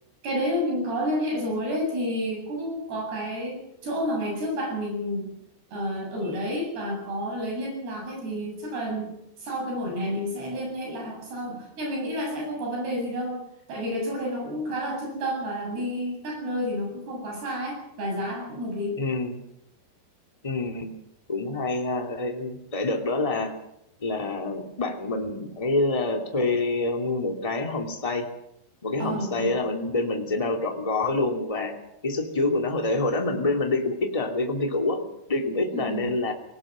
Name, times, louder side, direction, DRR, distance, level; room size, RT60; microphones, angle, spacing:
voice 1, 0.2-5.3 5.7-9.1 9.4-13.4 13.7-19.0 29.0-29.6 35.7-36.1, equal, 75° right, 1 dB, 10.0 m, -30 dB
voice 2, 19.0-19.4 20.4-20.9 21.3-23.5 24.0-28.3 28.8-31.7 32.0-35.0 35.3-36.3, left 2 dB, 10° left, 2 dB, 2.0 m, -26 dB
22.5 x 18.5 x 7.6 m, 0.80 s
omnidirectional pair, 4.7 m